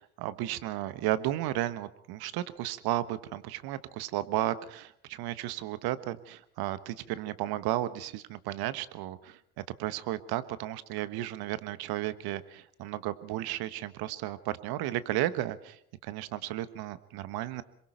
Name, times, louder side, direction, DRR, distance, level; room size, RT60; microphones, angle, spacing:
voice 1, 0.0-9.4 9.8-17.6, right 14 dB, 55° right, 14 dB, 1.4 m, -34 dB
26.5 x 23.0 x 4.5 m, 0.66 s
hypercardioid pair, 75°, 45 cm